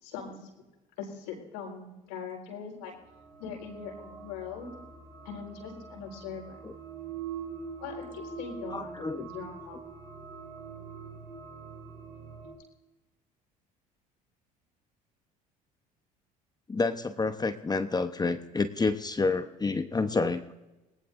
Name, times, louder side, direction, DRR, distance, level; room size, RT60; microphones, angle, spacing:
voice 1, 0.0-0.5 1.0-2.9 3.4-4.7 5.2-6.6 7.8-9.8, left 6 dB, 80° left, 0 dB, 4.4 m, -41 dB
sound 1, 3.1-12.5, right 5 dB, 70° right, 7.0 m, -43 dB
voice 2, 8.7-9.3 16.7-20.4, left 3 dB, 20° left, 9 dB, 0.9 m, -29 dB
27.0 x 19.0 x 2.6 m, 1.1 s
hypercardioid pair, 65°, 19 cm